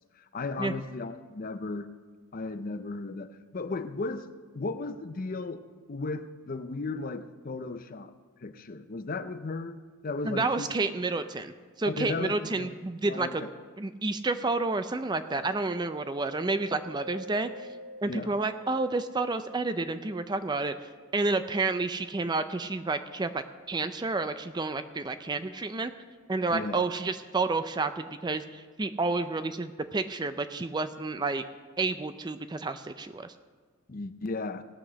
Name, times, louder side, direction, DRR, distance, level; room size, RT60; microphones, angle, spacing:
voice 1, 0.2-1.9 2.3-4.3 4.5-8.1 8.4-9.8 10.0-10.7 11.9-12.8 13.1-13.5 18.1-18.4 26.5-26.8 33.9-34.6, left 3 dB, 40° left, 11 dB, 0.5 m, -35 dB
voice 2, 10.2-11.5 11.8-13.4 13.8-17.5 18.0-20.7 21.1-25.9 26.3-31.4 31.8-33.3, right 3 dB, 20° right, 10 dB, 0.4 m, -30 dB
Mallet percussion, 15.3-24.8, left 1 dB, 75° right, 0.7 m, -49 dB
18.0 x 6.0 x 6.3 m, 1.5 s
head